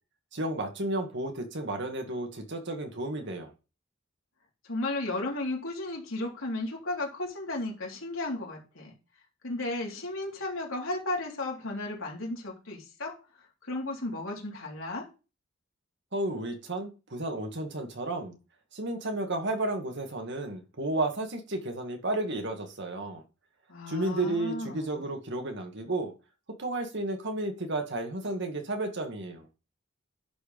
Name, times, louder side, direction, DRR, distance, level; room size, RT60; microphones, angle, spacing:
voice 1, 0.3-3.5 16.1-18.4 18.7-23.2 23.9-26.1 26.5-29.5, right 2 dB, 60° right, 1.9 m, -32 dB
voice 2, 4.6-8.9 9.4-13.1 13.7-15.0 23.7-25.0, left 2 dB, 85° left, 3.6 m, -34 dB
11.0 x 4.6 x 5.2 m
head